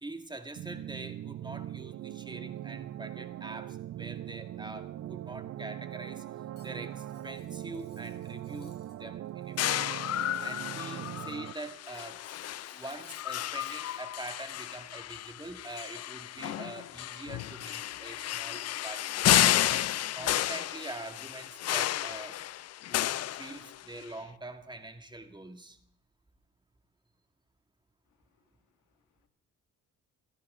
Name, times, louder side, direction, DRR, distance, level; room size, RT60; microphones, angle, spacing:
voice 1, 0.0-6.2 6.6-9.7 10.4-12.2 12.7-19.7 20.1-22.4 22.9-25.8, right 2 dB, 15° right, 7 dB, 1.8 m, -44 dB
sound 1, 0.5-11.5, right 12 dB, 55° right, 0.5 m, -41 dB
Cutlery silverware, 6.5-9.0 9.3-11.4 11.8-14.0, left 5 dB, 35° left, 3.5 m, -62 dB
sound 2, 9.6-24.0, left 13 dB, 55° left, 0.5 m, -32 dB
voice 2, 28.1-29.3, left 8 dB, 80° left, 7 dB, 1.9 m, -77 dB
27.0 x 11.0 x 3.7 m, 0.66 s
cardioid pair, 90°, 30 cm